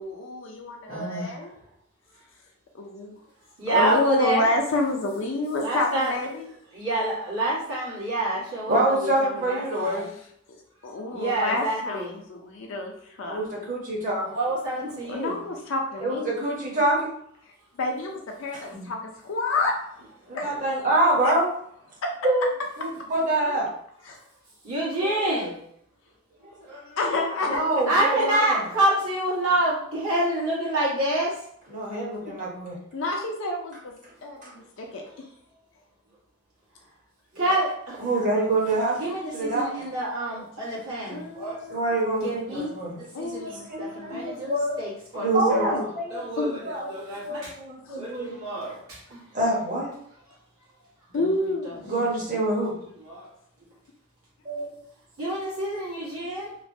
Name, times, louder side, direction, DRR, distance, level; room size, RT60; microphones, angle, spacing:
voice 1, 0.0-1.5 2.7-3.2 3.7-6.5 10.8-12.9 13.2-13.7 15.1-16.3 17.8-19.7 20.3-20.5 21.2-21.3 22.0-22.1 24.1-24.2 25.0-25.5 27.0-27.7 28.2-28.3 32.3-32.4 32.9-33.9 34.2-35.0 41.1-41.8 43.1-44.4 45.1-45.3 45.5-45.8 46.4-46.6 47.9-48.0 51.1-51.9, left 2 dB, 60° left, 1 dB, 0.4 m, -29 dB
voice 2, 0.9-1.3 8.7-10.1 13.2-14.2 16.0-17.1 18.5-18.6 20.3-21.4 22.2-22.5 22.8-23.7 26.4-26.5 27.5-28.6 31.7-32.8 34.4-34.5 38.0-39.0 39.3-39.7 41.7-43.0 43.5-44.8 45.2-46.2 46.6-48.4 49.3-49.9 51.8-52.7 54.4-54.7, right 1 dB, 35° right, -3 dB, 0.8 m, -26 dB
voice 3, 3.6-4.5 5.6-6.1 6.7-10.1 11.1-12.2 14.2-15.4 18.7-18.9 24.6-25.5 26.6-27.0 27.5-27.6 27.9-31.4 37.3-38.1 39.0-41.6 42.2-45.7 46.1-47.5 48.0-49.2 51.1-51.3 51.6-51.7 52.6-52.7 53.0-53.3 55.2-56.5, right 1 dB, 85° right, -7 dB, 1.4 m, -28 dB
3.1 x 2.1 x 2.6 m, 0.67 s
head